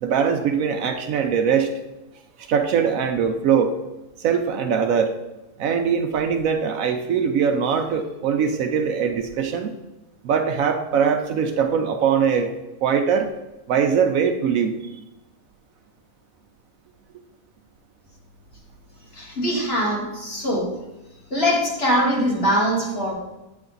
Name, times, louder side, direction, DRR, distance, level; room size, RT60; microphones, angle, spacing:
voice 1, 0.0-1.7 2.4-3.7 4.2-5.2 5.6-9.7 10.2-12.5 12.8-13.3 13.7-14.9, right 7 dB, 70° right, 5 dB, 1.0 m, -21 dB
voice 2, 19.1-20.8 21.3-23.1, equal, 45° left, -3 dB, 1.8 m, -22 dB
8.3 x 3.4 x 3.9 m, 0.98 s
omnidirectional pair, 1.6 m